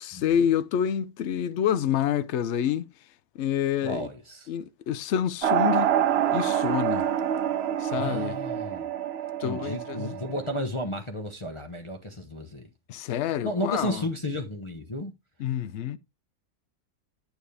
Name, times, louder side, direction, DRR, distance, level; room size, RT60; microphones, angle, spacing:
voice 1, 0.0-2.9 3.3-4.1 4.5-6.0 6.3-7.1 7.8-8.3 9.4-10.1 12.9-14.0 15.4-16.0, left 9 dB, 65° left, 0.7 m, -27 dB
voice 2, 3.8-4.5 8.0-8.9 9.4-12.7 13.4-15.1, equal, 25° left, 0.7 m, -33 dB
sound 1, 5.4-10.6, right 10 dB, 65° right, 0.7 m, -27 dB
9.1 x 7.0 x 3.3 m
omnidirectional pair, 1.7 m